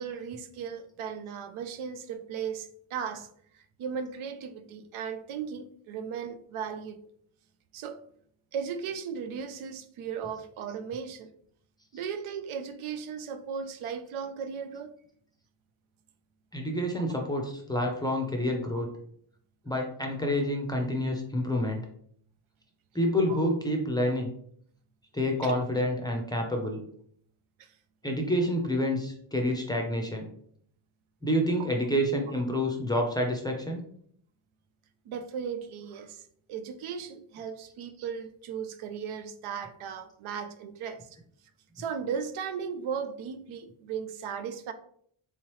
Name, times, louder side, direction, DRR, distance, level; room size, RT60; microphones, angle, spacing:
voice 1, 0.0-3.3 3.5-7.1 7.7-8.0 8.5-11.3 11.9-14.9 18.7-18.8 25.4-25.6 27.6-27.7 31.6-31.7 35.1-41.2 41.8-44.7, right 7 dB, 80° right, 0.6 m, -36 dB
voice 2, 16.5-18.9 19.6-21.8 22.9-24.3 25.1-26.8 28.0-30.3 31.2-33.8, equal, 10° left, 0.5 m, -28 dB
3.5 x 3.2 x 3.0 m
cardioid pair, 135°, 48 cm